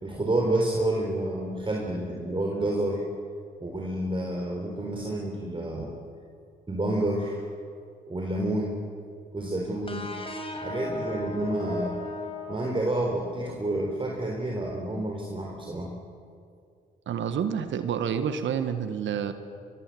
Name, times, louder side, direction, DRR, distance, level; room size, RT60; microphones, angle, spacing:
voice 1, 0.0-3.0 3.6-5.9 6.7-7.5 8.1-8.8 9.3-10.1 10.6-12.0 12.5-15.9, right 1 dB, 25° right, 0 dB, 4.2 m, -29 dB
sound 1, 9.9-13.4, left 2 dB, 25° left, 4.8 m, -36 dB
voice 2, 17.1-19.3, right 8 dB, 70° right, 10 dB, 1.7 m, -28 dB
23.0 x 22.5 x 7.9 m, 2.4 s
supercardioid pair, 55°, 20 cm